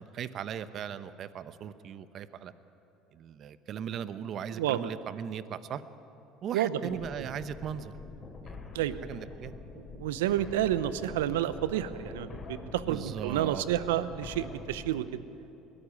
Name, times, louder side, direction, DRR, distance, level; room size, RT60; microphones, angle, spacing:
voice 1, 0.0-2.5 3.1-5.8 6.4-7.9 8.4-9.5 12.8-13.6, right 8 dB, 50° right, 13 dB, 0.9 m, -38 dB
voice 2, 4.6-4.9 6.5-6.7 7.2-7.3 8.7-9.0 10.0-15.1, right 12 dB, 85° right, 14 dB, 0.7 m, -30 dB
sound 1, 6.9-15.0, left 3 dB, 35° left, 3.9 m, -45 dB
21.0 x 14.0 x 9.7 m, 2.9 s
hypercardioid pair, 80°, 0 cm